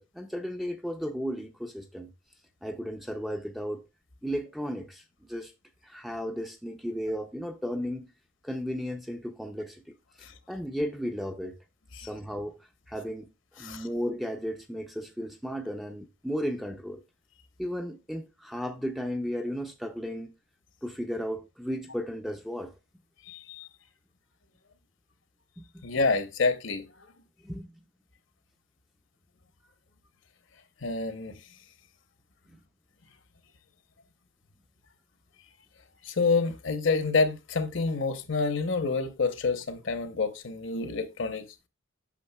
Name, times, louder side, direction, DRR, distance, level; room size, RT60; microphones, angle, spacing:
voice 1, 0.0-2.1 2.6-3.8 4.2-5.5 5.8-8.1 8.4-11.6 12.0-12.6 12.9-13.3 13.6-17.0 17.6-20.3 20.8-22.7 25.6-25.8 27.4-27.7 32.5-32.6, equal, ahead, 0.4 m, -34 dB
voice 2, 23.3-23.7 25.8-26.8 30.8-31.3 36.0-41.4, left 4 dB, 65° left, 0.8 m, -28 dB
8.3 x 6.2 x 2.2 m
head